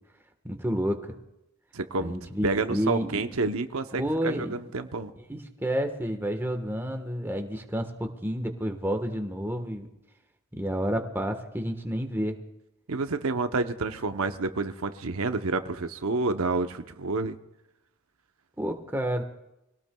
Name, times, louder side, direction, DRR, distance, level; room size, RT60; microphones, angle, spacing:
voice 1, 0.4-1.2 2.0-3.2 3.9-4.6 5.3-9.9 10.5-12.4 18.6-19.2, equal, 10° right, 5 dB, 1.3 m, -30 dB
voice 2, 1.7-2.1 2.4-5.1 12.9-17.3, right 3 dB, 80° right, 8 dB, 0.8 m, -29 dB
24.5 x 18.0 x 2.3 m, 0.91 s
head